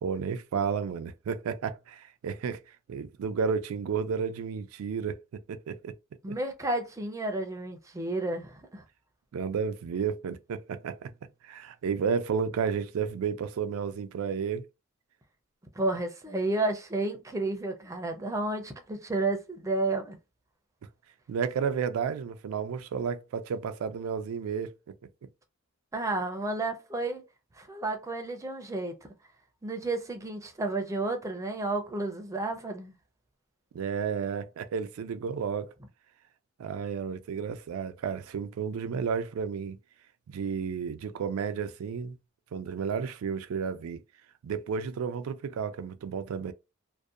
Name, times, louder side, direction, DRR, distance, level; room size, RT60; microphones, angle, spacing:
voice 1, 0.0-2.6 2.9-6.0 6.3-6.4 9.3-11.1 11.4-14.7 21.3-24.7 33.7-35.7 36.6-39.8 40.3-42.2 42.5-44.0 44.4-46.5, right 6 dB, 85° right, 0.3 m, -32 dB
voice 2, 6.2-8.8 15.8-20.2 25.9-27.2 27.6-28.9 29.6-32.9, right 2 dB, 15° right, 0.5 m, -31 dB
2.6 x 2.1 x 2.3 m
head